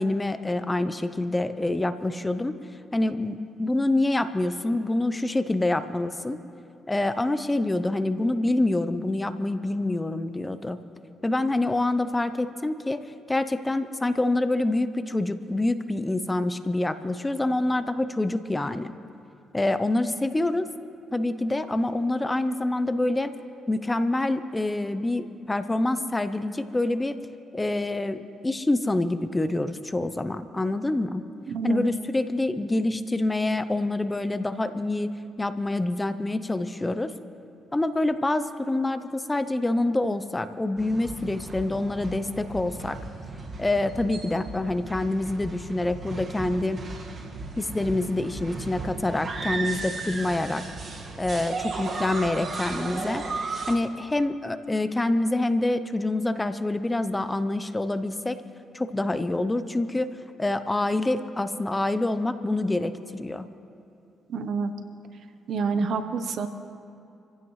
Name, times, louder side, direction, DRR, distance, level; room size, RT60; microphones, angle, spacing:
voice 1, 0.0-2.5 2.9-6.4 6.9-10.8 11.2-13.0 13.3-18.9 19.5-20.7 21.1-23.3 23.7-27.2 27.5-31.2 31.6-35.1 35.4-37.1 37.7-43.0 43.6-46.8 47.6-50.6 51.2-53.2 53.7-58.4 58.7-60.1 60.4-63.5, left 2 dB, 15° left, 11 dB, 0.7 m, -26 dB
voice 2, 31.5-31.8 64.3-64.7 65.5-66.5, right 5 dB, 65° right, 9 dB, 1.0 m, -27 dB
sound 1, 40.8-53.8, right 3 dB, 45° right, 1.8 m, -35 dB
26.5 x 15.5 x 3.2 m, 2.6 s
cardioid pair, 90°, 0 cm